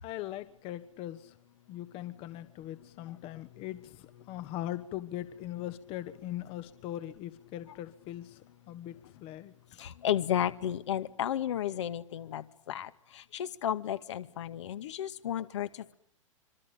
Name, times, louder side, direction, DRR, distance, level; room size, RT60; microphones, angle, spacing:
voice 1, 0.0-1.4 1.7-9.5, left 13 dB, 35° left, 1.4 m, -40 dB
voice 2, 9.8-15.9, left 10 dB, 60° left, 2.1 m, -33 dB
26.0 x 25.0 x 9.1 m
figure-of-eight pair, 110°, 17 cm